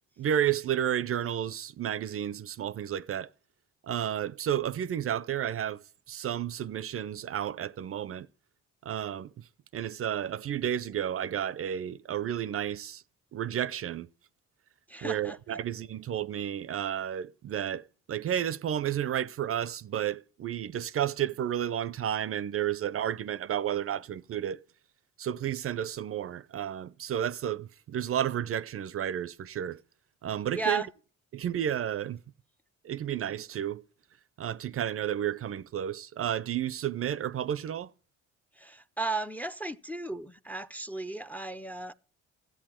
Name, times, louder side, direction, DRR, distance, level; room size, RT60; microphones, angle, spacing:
voice 1, 0.2-3.3 3.8-8.3 8.8-13.0 13.3-14.1 15.0-24.6 25.2-29.8 30.2-30.8 31.3-32.2 32.8-33.8 34.4-37.9, right 10 dB, 45° right, 0.5 m, -32 dB
voice 2, 14.9-15.6 30.5-30.9 38.5-41.9, right 3 dB, 5° left, 0.5 m, -35 dB
13.5 x 8.2 x 4.3 m
cardioid pair, 90°, 30 cm